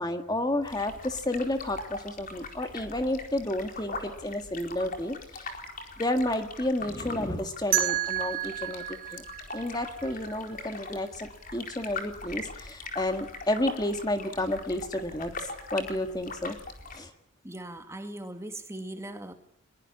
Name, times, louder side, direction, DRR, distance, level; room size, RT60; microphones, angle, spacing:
voice 1, 0.0-5.5 6.0-8.8 9.1-9.2 9.5-16.6 16.9-17.1, left 1 dB, 20° left, 7 dB, 1.8 m, -31 dB
sound 1, 0.6-17.0, left 3 dB, 40° left, 4.2 m, -41 dB
sound 2, 7.7-10.6, right 15 dB, 45° right, 4.4 m, -31 dB
voice 2, 17.4-19.3, right 1 dB, 10° right, 7 dB, 2.0 m, -39 dB
23.5 x 22.0 x 8.6 m, 0.72 s
head